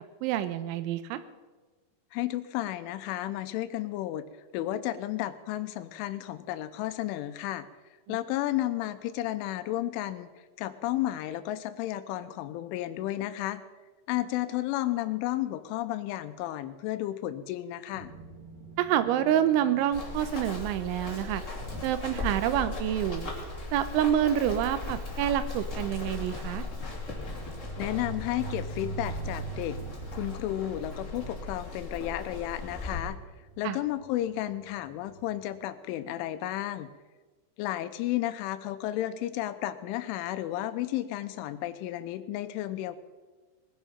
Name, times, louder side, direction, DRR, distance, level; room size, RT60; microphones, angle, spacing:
voice 1, 0.2-1.2 8.1-8.2 18.8-21.4 21.8-23.3 23.7-26.6 33.6-33.8, right 11 dB, 80° right, 12 dB, 3.1 m, -27 dB
voice 2, 2.1-4.2 4.5-7.7 8.1-10.3 10.6-13.6 14.1-18.1 27.8-29.8 30.1-33.2 33.6-36.9 37.6-43.0, left 14 dB, 85° left, 12 dB, 3.2 m, -32 dB
sound 1, 17.9-35.4, right 4 dB, 40° right, 2.2 m, -45 dB
Run, 19.9-33.0, left 3 dB, 25° left, 1.7 m, -38 dB
20.0 x 10.5 x 5.7 m, 1.3 s
omnidirectional pair, 5.6 m